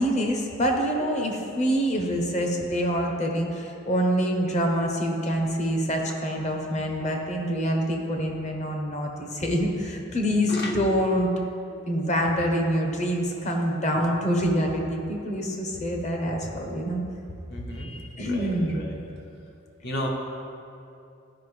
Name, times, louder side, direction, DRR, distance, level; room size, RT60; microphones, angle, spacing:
voice 1, 0.0-11.3 11.9-17.0 18.1-18.8, equal, 35° left, 2 dB, 0.9 m, -26 dB
voice 2, 10.5-10.8 11.7-12.0 13.9-14.1 17.5-19.0 19.8-20.1, left 1 dB, 55° left, 0 dB, 1.1 m, -34 dB
11.5 x 5.2 x 3.3 m, 2.6 s
head